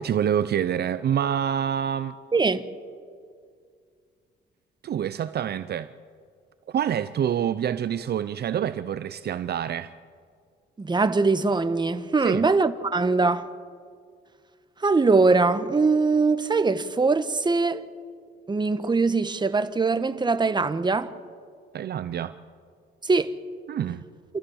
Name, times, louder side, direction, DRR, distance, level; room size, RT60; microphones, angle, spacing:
voice 1, 0.0-2.1 4.8-5.9 6.7-9.9 12.2-12.5 21.7-22.4 23.7-24.0, right 9 dB, 55° right, 0.6 m, -27 dB
voice 2, 2.3-2.6 10.8-13.5 14.8-17.8 18.5-21.1 23.0-23.3, right 3 dB, 20° right, 1.2 m, -22 dB
28.0 x 14.0 x 7.2 m
cardioid pair, 90°, 20 cm